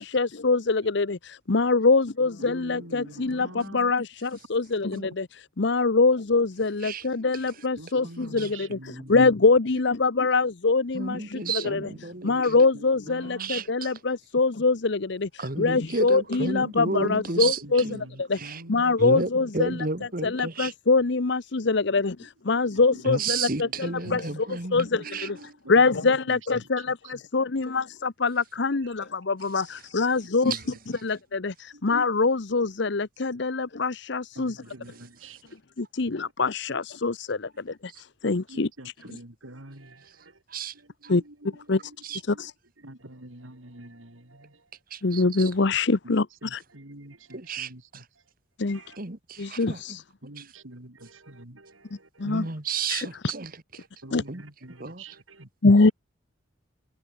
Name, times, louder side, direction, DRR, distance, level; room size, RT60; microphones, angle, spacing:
voice 1, 0.0-5.2 5.6-8.8 9.1-18.4 18.7-25.4 25.7-30.6 31.0-34.6 35.8-38.7 41.1-41.2 41.7-41.8 42.3-42.5 45.0-46.6 48.6-48.8 49.4-50.0 52.2-52.5 52.9-53.3 54.1-54.2 55.6-55.9, left 3 dB, 60° left, 0.8 m, -24 dB
voice 2, 2.4-3.9 4.9-5.1 7.8-9.2 10.2-10.3 11.2-11.3 12.2-13.5 16.9-19.0 19.3-19.9 21.9-23.0 23.5-27.1 27.5-27.8 28.8-28.9 30.2-30.8 31.7-31.8 34.3-35.6 36.0-36.1 38.5-40.4 40.7-42.5 42.8-45.0 46.0-48.3 48.7-49.0 49.6-49.7 50.2-52.6 53.8-55.5, right 1 dB, 80° right, 4.2 m, -47 dB
voice 3, 10.9-12.3 13.4-13.6 15.4-18.0 18.4-18.6 19.0-20.7 23.1-24.8 25.1-25.3 30.5-30.6 40.5-40.7 41.0-41.1 42.0-42.2 44.9-45.2 47.5-47.7 49.0-49.8 52.2-53.8 54.3-54.4 54.8-55.0, right 4 dB, 45° right, 2.1 m, -31 dB
head